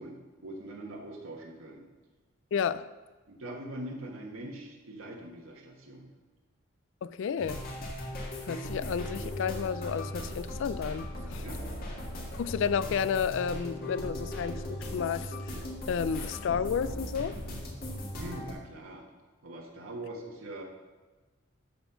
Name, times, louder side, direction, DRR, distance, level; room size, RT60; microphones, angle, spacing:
voice 1, 0.0-1.8 3.3-6.1 11.4-11.6 18.2-19.0 19.4-20.6, right 1 dB, 85° right, 0 dB, 1.4 m, -42 dB
voice 2, 2.5-2.9 7.0-7.6 8.4-11.4 12.4-15.6 15.9-17.3, left 7 dB, 65° left, 15 dB, 0.3 m, -31 dB
sound 1, 7.4-18.5, left 1 dB, 50° left, 1.9 m, -38 dB
12.5 x 4.3 x 5.6 m, 1.3 s
head